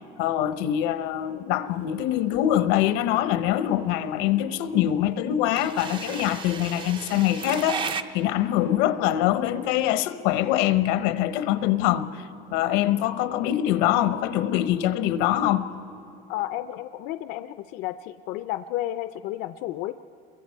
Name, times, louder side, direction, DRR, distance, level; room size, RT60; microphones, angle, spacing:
voice 1, 0.2-12.2 12.5-15.7, left 12 dB, 90° left, 0.8 m, -24 dB
sound 1, 1.7-8.0, right 6 dB, 25° right, 0.5 m, -35 dB
voice 2, 12.8-13.2 16.3-19.9, left 14 dB, 60° left, 0.4 m, -32 dB
28.5 x 22.5 x 4.5 m
cardioid pair, 170°, 19 cm